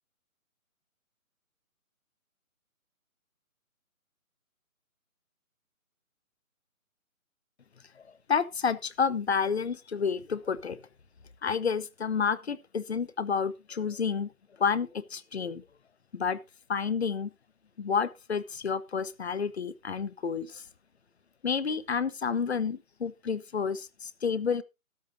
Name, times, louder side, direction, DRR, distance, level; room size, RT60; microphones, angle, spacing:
voice 1, 8.3-10.8 11.4-14.3 14.6-15.6 16.1-16.4 16.7-17.3 17.8-20.6 21.4-24.6, left 6 dB, 50° left, 0.9 m, -30 dB
14.0 x 11.0 x 2.7 m
hypercardioid pair, 170°, 42 cm